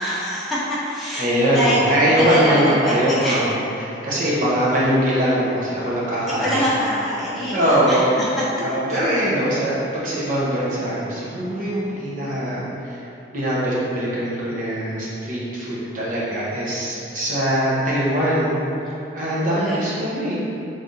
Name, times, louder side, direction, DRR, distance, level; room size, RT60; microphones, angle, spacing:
voice 1, 0.0-1.8 2.2-3.4 6.4-8.0 19.4-19.9, equal, ahead, -10 dB, 0.7 m, -24 dB
voice 2, 1.2-3.6 4.0-6.7 7.5-8.1 8.6-13.1 13.3-18.6 19.1-20.4, equal, 45° right, -7 dB, 1.1 m, -22 dB
4.0 x 3.5 x 3.8 m, 2.7 s
head